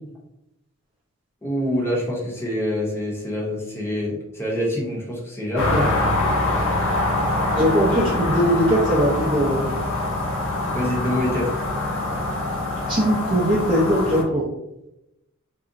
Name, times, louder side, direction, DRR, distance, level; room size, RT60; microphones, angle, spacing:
voice 1, 1.4-5.9 10.7-11.5, left 1 dB, 10° left, -4 dB, 0.7 m, -25 dB
sound 1, 5.6-14.2, left 2 dB, 65° left, 0.8 m, -24 dB
voice 2, 7.6-9.7 12.9-14.4, equal, 25° right, -6 dB, 0.5 m, -20 dB
3.7 x 2.0 x 2.5 m, 0.89 s
head